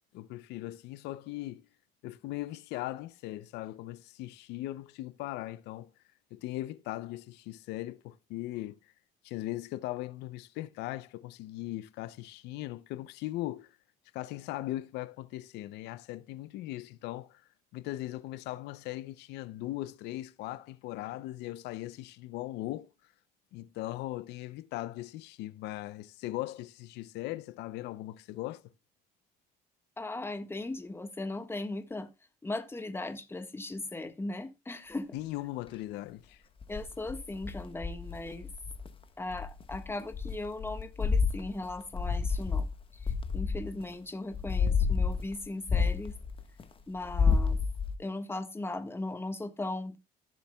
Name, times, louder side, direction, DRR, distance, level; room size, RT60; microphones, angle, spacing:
voice 1, 0.1-1.6 2.0-5.9 6.3-8.9 9.2-13.8 14.1-23.1 23.5-28.6 35.1-36.4, left 16 dB, 90° left, 0.6 m, -39 dB
voice 2, 30.0-32.1 32.4-35.2 36.7-38.5 39.2-42.6 43.3-46.1 46.9-47.6 48.0-50.0, left 2 dB, 15° left, 1.4 m, -38 dB
sound 1, 36.6-38.9 39.3-43.9 44.3-46.6 47.0-47.9, left 5 dB, 30° left, 1.3 m, -30 dB
15.0 x 7.1 x 2.2 m
cardioid pair, 110°, 17 cm